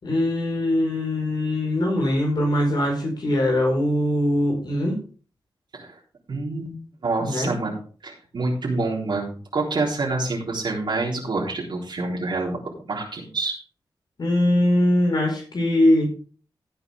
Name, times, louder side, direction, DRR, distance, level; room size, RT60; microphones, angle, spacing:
voice 1, 0.0-5.0 7.2-7.5 14.2-16.1, left 1 dB, 60° left, 0 dB, 4.6 m, -21 dB
voice 2, 6.3-7.7 8.0-13.6, right 3 dB, 65° right, -3 dB, 3.7 m, -27 dB
16.0 x 8.2 x 3.5 m, 0.40 s
wide cardioid pair, 80°, 8 cm